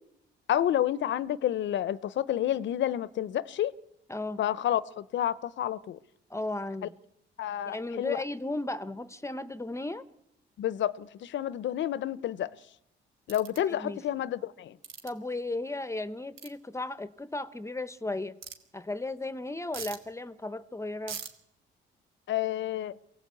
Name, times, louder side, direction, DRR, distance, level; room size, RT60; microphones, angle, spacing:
voice 1, 0.5-3.7 4.4-6.0 7.4-8.2 10.6-12.5 13.3-14.8 22.3-23.0, left 11 dB, 70° left, 0.8 m, -29 dB
voice 2, 4.1-4.4 6.3-6.9 7.7-10.1 13.7-14.0 15.0-18.4 18.7-21.2, left 2 dB, 15° left, 0.9 m, -35 dB
sound 1, 13.3-13.6 14.8-15.1 16.4-16.5 18.4-18.6 19.7-20.0 21.1-21.3, right 7 dB, 85° right, 2.7 m, -40 dB
23.5 x 17.5 x 8.3 m
cardioid pair, 90°, 20 cm